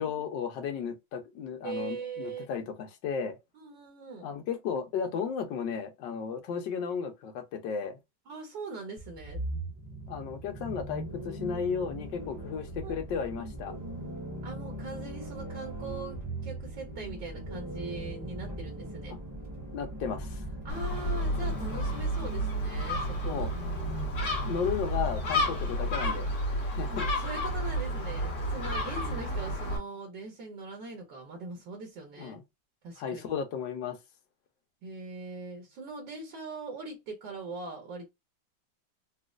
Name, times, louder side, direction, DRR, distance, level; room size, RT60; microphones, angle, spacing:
voice 1, 0.0-3.4 4.2-8.0 10.1-13.7 19.7-20.4 23.2-23.5 24.4-26.3 26.7-27.1 32.2-32.4 33.0-34.0, left 6 dB, 70° left, 1.4 m, -34 dB
voice 2, 1.6-2.5 3.5-4.3 8.3-9.4 12.8-12.9 14.4-19.2 20.6-23.5 26.9-32.4 32.8-33.3 34.8-38.1, right 3 dB, 70° right, 1.5 m, -41 dB
sound 1, 9.0-25.8, right 1 dB, 15° right, 0.7 m, -39 dB
Gull seagull, 20.7-29.8, equal, 45° left, 1.5 m, -31 dB
4.1 x 2.4 x 2.4 m
omnidirectional pair, 2.1 m